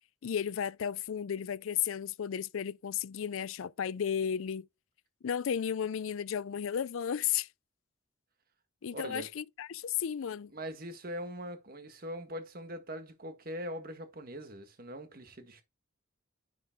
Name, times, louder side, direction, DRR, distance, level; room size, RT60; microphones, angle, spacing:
voice 1, 0.2-4.7 5.2-7.5 8.8-10.5, left 8 dB, 80° left, 0.4 m, -34 dB
voice 2, 8.9-9.3 10.5-15.6, equal, 45° right, 1.5 m, -41 dB
10.0 x 3.8 x 3.6 m
head